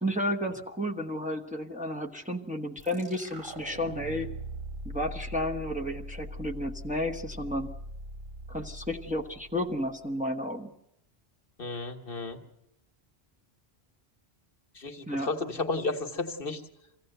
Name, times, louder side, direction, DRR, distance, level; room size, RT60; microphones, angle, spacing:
voice 1, 0.0-4.3 4.8-7.7 8.5-10.7 15.1-15.3, left 1 dB, 10° right, 2 dB, 1.1 m, -32 dB
sound 1, 2.8-10.1, equal, 55° right, 5.5 m, -41 dB
voice 2, 11.6-12.4 14.7-16.6, left 3 dB, 65° left, 6 dB, 1.6 m, -33 dB
24.0 x 16.0 x 8.0 m, 0.81 s
omnidirectional pair, 1.0 m